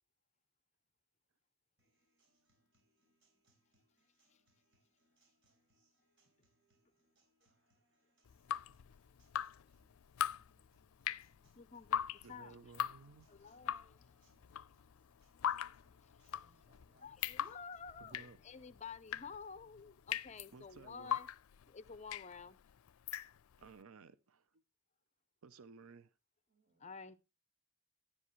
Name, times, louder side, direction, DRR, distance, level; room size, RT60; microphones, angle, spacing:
Acoustic guitar, 1.8-17.8, right 1 dB, 65° right, 6.5 m, -77 dB
Drip, 8.3-23.7, left 9 dB, 85° left, 0.4 m, -42 dB
voice 1, 11.6-12.7 13.3-14.1 16.0-16.3 17.0-21.3 21.7-22.6 26.8-27.1, left 5 dB, 35° left, 0.5 m, -51 dB
voice 2, 12.2-13.3 18.0-18.4 20.5-21.2 23.6-24.6 25.4-26.2, right 4 dB, 85° right, 0.6 m, -57 dB
voice 3, 16.4-17.1 26.5-27.2, equal, 40° right, 3.4 m, -74 dB
11.0 x 10.0 x 3.1 m
head